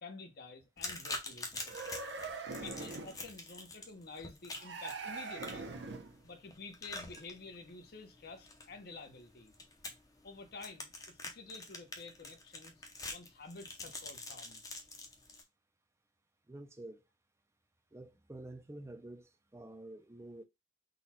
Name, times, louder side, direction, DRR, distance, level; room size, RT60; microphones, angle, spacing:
voice 1, 0.0-2.0 2.6-5.7 6.2-9.5 10.2-14.6, left 3 dB, 55° left, 0.9 m, -50 dB
sound 1, 0.8-15.4, left 2 dB, 20° left, 0.7 m, -46 dB
sound 2, 1.6-3.2 4.6-6.2, right 4 dB, 70° right, 0.7 m, -42 dB
voice 2, 16.5-17.0 17.9-20.4, right 1 dB, 15° right, 0.4 m, -49 dB
4.0 x 2.3 x 4.2 m
head